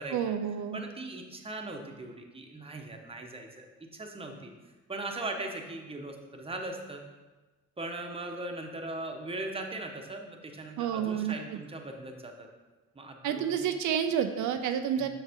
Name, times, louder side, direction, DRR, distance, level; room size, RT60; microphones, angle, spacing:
voice 1, 0.1-0.8 10.8-11.3 13.2-15.1, right 8 dB, 80° right, 7 dB, 0.5 m, -29 dB
voice 2, 0.7-4.5 4.9-7.0 7.8-12.5 12.9-13.6 15.0-15.1, right 2 dB, 20° right, 2 dB, 1.0 m, -39 dB
6.5 x 6.3 x 3.6 m, 1.2 s
cardioid pair, 90°, 30 cm